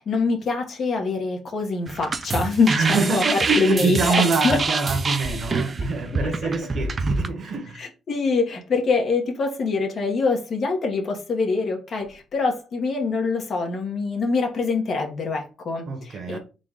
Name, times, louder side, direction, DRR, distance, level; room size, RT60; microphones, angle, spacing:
voice 1, 0.0-4.6 6.2-6.7 7.8-16.4, left 4 dB, 55° left, 1.3 m, -24 dB
sound 1, 1.9-7.3, right 3 dB, 35° right, 0.4 m, -26 dB
voice 2, 2.7-7.8 15.9-16.4, right 4 dB, 55° right, 1.1 m, -25 dB
3.9 x 2.4 x 3.8 m
cardioid pair, 90°, 0 cm